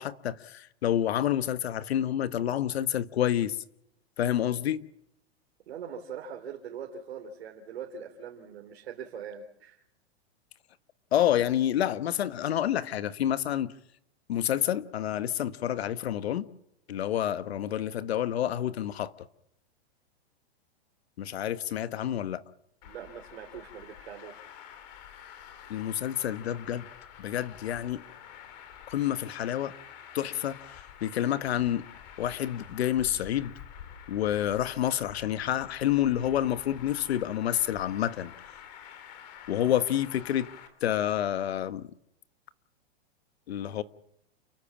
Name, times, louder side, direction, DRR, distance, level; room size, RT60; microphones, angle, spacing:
voice 1, 0.0-3.6 4.2-4.9 11.1-13.7 14.3-16.5 16.9-19.1 21.2-22.4 25.7-26.9 27.2-28.0 28.9-29.7 30.1-31.9 32.2-33.5 34.1-38.3 39.5-40.5 40.8-41.9 43.5-43.8, left 11 dB, 80° left, 1.4 m, -28 dB
voice 2, 5.7-9.8 22.8-24.3, right 7 dB, 75° right, 3.6 m, -42 dB
Traffic noise roadway noise, 22.8-40.7, left 9 dB, 40° left, 3.2 m, -48 dB
30.0 x 14.0 x 7.3 m
supercardioid pair, 165°, 31 cm